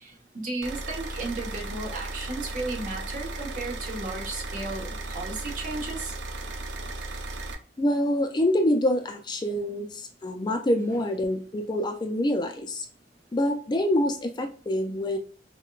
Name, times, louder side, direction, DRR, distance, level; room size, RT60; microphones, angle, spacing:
voice 1, 0.0-6.1 10.8-11.0, right 2 dB, 45° right, 0 dB, 1.0 m, -34 dB
sound 1, 0.6-7.5, right 2 dB, 85° right, 0.7 m, -35 dB
voice 2, 7.8-12.8 13.3-15.2, left 1 dB, 25° left, 5 dB, 0.4 m, -26 dB
5.6 x 2.2 x 2.3 m, 0.39 s
head